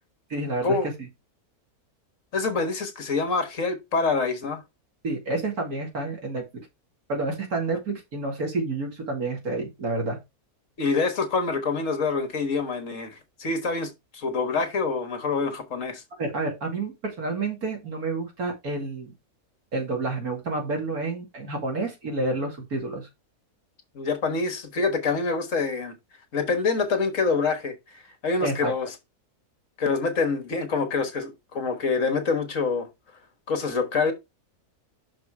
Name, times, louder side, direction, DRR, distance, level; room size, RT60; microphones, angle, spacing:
voice 1, 0.3-1.1 5.0-6.4 7.1-10.2 16.2-19.1 19.7-23.1 28.4-28.7, right 2 dB, 75° right, 2.8 m, -29 dB
voice 2, 2.3-4.6 10.8-16.0 24.0-25.9 26.3-28.9 29.8-32.9 33.5-34.1, left 4 dB, 60° left, 1.7 m, -26 dB
6.0 x 5.3 x 4.7 m
omnidirectional pair, 1.6 m